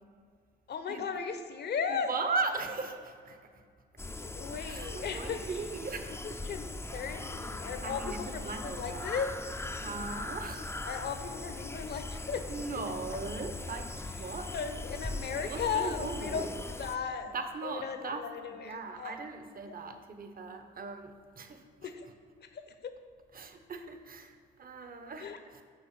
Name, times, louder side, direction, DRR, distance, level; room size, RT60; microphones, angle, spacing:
voice 1, 0.7-2.1 4.0-5.5 6.1-9.3 10.8-12.4 14.2-17.3 17.6-19.2 19.7-19.8 21.8-22.1 22.4-23.0 25.2-25.4, left 6 dB, 55° left, 8 dB, 0.9 m, -37 dB
voice 2, 1.9-3.6 4.7-6.2 7.8-9.1 9.8-10.9 12.5-14.5 15.4-16.5 17.3-18.2 18.6-21.6 23.3-25.6, right 3 dB, 45° right, 7 dB, 1.0 m, -38 dB
sound 1, 4.0-17.0, left 2 dB, 10° left, 0.6 m, -40 dB
6.3 x 6.1 x 6.6 m, 2.1 s
supercardioid pair, 55°, 21 cm